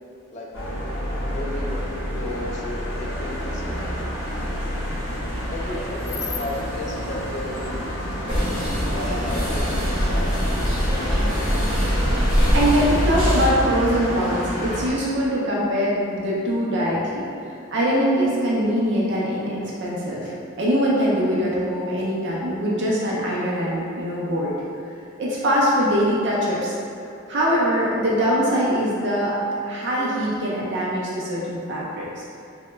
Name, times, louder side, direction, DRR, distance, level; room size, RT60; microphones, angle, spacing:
sound 1, 0.5-14.9, equal, 65° left, 0.7 m, -28 dB
voice 1, 1.3-1.7 2.1-3.9 5.5-11.0, left 1 dB, 30° left, -2 dB, 0.3 m, -34 dB
sound 2, 8.3-13.5, equal, 20° right, 1.0 m, -23 dB
voice 2, 12.5-17.3 17.7-20.3 20.6-24.5 25.2-26.8 27.3-29.4 29.7-32.2, equal, 50° right, -5 dB, 0.4 m, -22 dB
2.9 x 2.1 x 3.3 m, 2.6 s
head